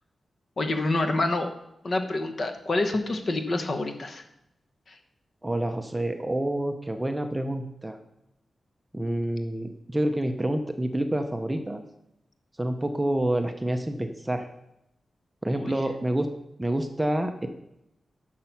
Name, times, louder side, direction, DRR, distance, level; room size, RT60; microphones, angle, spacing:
voice 1, 0.6-1.5 1.8-4.2 4.9-5.0 15.5-15.7, left 2 dB, 40° left, 6 dB, 1.0 m, -27 dB
voice 2, 5.4-8.0 8.9-11.8 12.6-14.5 15.4-16.3 16.6-17.5, right 1 dB, 10° right, 6 dB, 0.6 m, -28 dB
11.5 x 6.6 x 5.9 m, 0.85 s
wide cardioid pair, 180°, 0 cm